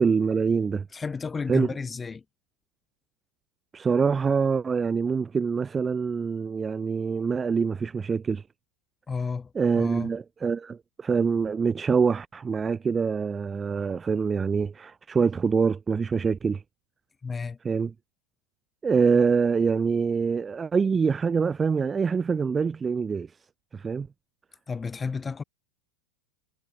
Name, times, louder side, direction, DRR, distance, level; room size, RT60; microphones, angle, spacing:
voice 1, 0.0-0.9 1.5-1.7 3.7-8.4 9.6-16.6 17.6-17.9 18.8-23.3 23.7-24.1, right 5 dB, 15° right, 0.5 m, -25 dB
voice 2, 0.9-2.2 9.1-10.1 17.2-17.6 24.7-25.4, left 5 dB, 15° left, 5.3 m, -32 dB
figure-of-eight pair, 90°, 0 cm